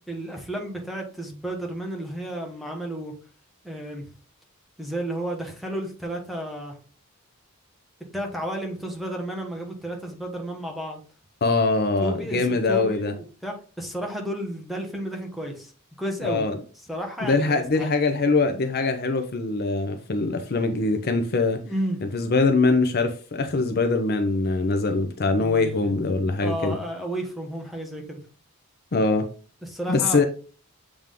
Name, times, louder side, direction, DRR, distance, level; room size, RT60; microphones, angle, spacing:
voice 1, 0.1-3.1 3.6-4.0 4.8-6.8 8.1-11.0 12.0-15.7 16.0-16.5 16.9-17.9 21.6-22.0 25.4-25.9 26.4-28.2 29.6-30.3, right 1 dB, ahead, 1.1 m, -32 dB
voice 2, 11.4-13.1 16.2-16.6 17.2-21.6 22.0-26.8 28.9-29.2 29.9-30.2, left 3 dB, 45° left, 0.6 m, -23 dB
7.4 x 3.5 x 3.7 m
head